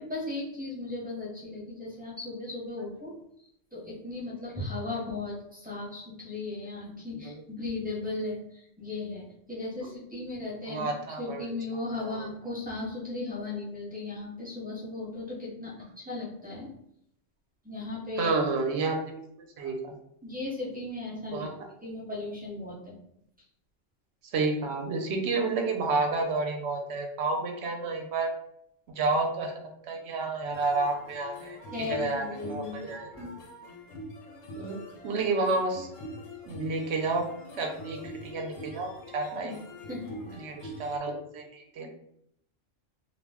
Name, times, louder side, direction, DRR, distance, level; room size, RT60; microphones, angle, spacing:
voice 1, 0.0-16.7 17.6-18.3 20.2-21.5 21.8-22.9 31.7-33.4 39.2-39.6 39.9-40.2, left 2 dB, 10° right, -5 dB, 0.7 m, -37 dB
voice 2, 10.7-11.5 12.0-12.2 18.2-19.1 19.6-19.9 21.3-21.5 24.3-28.3 28.9-33.3 34.6-34.8 35.0-35.9 36.5-37.3 37.6-39.5 40.4-41.9, right 3 dB, 65° right, 2 dB, 0.8 m, -30 dB
sound 1, 30.5-41.0, equal, 85° left, 1.0 m, -44 dB
2.3 x 2.1 x 3.4 m, 0.74 s
omnidirectional pair, 1.3 m